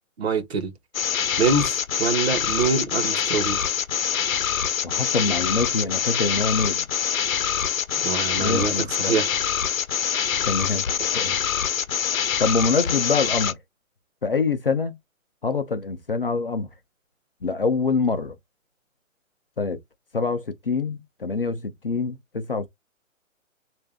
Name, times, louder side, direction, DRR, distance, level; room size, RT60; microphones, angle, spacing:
voice 1, 0.2-0.7 1.4-3.6 8.0-9.4, right 4 dB, 50° right, 0.7 m, -25 dB
sound 1, 0.9-13.5, left 8 dB, 75° left, 0.7 m, -25 dB
voice 2, 4.8-6.9 8.4-9.2 10.5-10.8 11.1-11.4 12.4-13.6 14.2-14.9 15.4-16.7 17.4-18.3 19.6-19.8 20.1-22.7, left 4 dB, 45° left, 0.4 m, -25 dB
3.6 x 2.5 x 3.4 m
hypercardioid pair, 175°, 40 cm